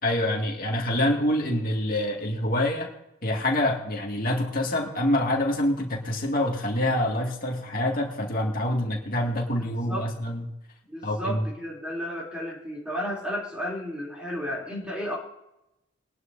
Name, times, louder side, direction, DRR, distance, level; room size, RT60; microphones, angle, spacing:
voice 1, 0.0-2.9 3.2-10.5 11.0-11.4, left 1 dB, 45° left, 1 dB, 2.0 m, -26 dB
voice 2, 9.6-10.1 10.9-15.2, equal, 5° right, -4 dB, 3.0 m, -33 dB
22.0 x 11.0 x 2.7 m, 0.88 s
head